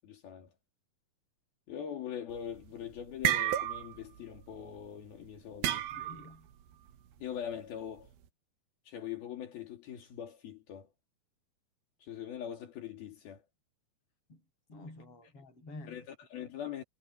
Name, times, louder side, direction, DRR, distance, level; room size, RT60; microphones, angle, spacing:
voice 1, 0.0-0.5 1.7-5.9 7.2-8.1 8.9-10.9 12.0-13.4 15.9-16.8, left 9 dB, 80° left, 4.6 m, -42 dB
sound 1, 2.4-2.7 3.0-4.1 4.3-4.6 5.6-6.3, right 11 dB, 75° right, 3.1 m, -31 dB
voice 2, 5.9-6.5 14.3-14.4 14.7-16.1, left 2 dB, 35° left, 8.8 m, -49 dB
omnidirectional pair, 4.3 m